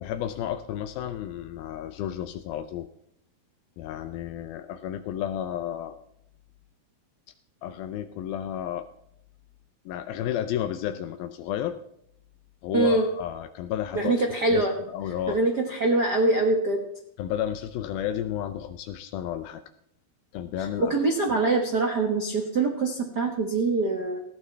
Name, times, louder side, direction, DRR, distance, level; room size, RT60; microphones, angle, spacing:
voice 1, 0.0-2.9 3.8-6.0 7.6-8.9 9.9-11.8 12.6-14.6 14.9-15.4 17.2-19.6 20.3-20.9, left 10 dB, 80° left, 9 dB, 2.4 m, -32 dB
voice 2, 12.7-13.0 13.9-14.7 15.3-16.8 20.6-24.2, right 2 dB, 90° right, 2 dB, 0.9 m, -24 dB
19.0 x 15.5 x 3.3 m, 0.74 s
omnidirectional pair, 4.3 m